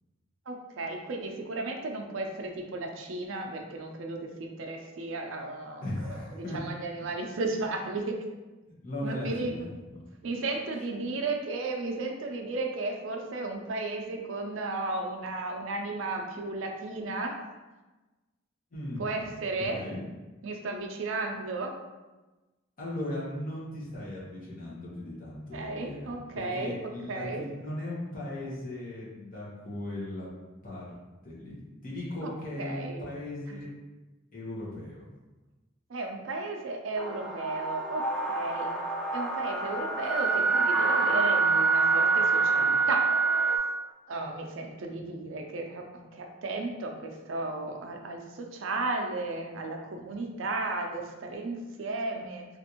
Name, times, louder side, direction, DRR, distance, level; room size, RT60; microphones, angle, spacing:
voice 1, 0.5-5.8 6.4-8.2 9.0-9.7 10.2-17.4 19.0-19.8 20.4-21.7 25.5-27.5 32.6-33.0 33.5-33.6 35.9-38.0 38.3-38.7 39.1-43.1 44.1-52.5, right 2 dB, 80° right, 2 dB, 0.5 m, -34 dB
voice 2, 5.8-6.6 8.6-9.6 9.9-10.0 18.7-19.3 19.7-20.1 22.8-30.3 30.6-30.9 31.2-33.7 34.3-35.1, left 1 dB, 45° left, -7 dB, 1.0 m, -37 dB
sound 1, 37.0-43.6, right 4 dB, ahead, 0.3 m, -26 dB
3.4 x 2.5 x 2.9 m, 1.2 s
head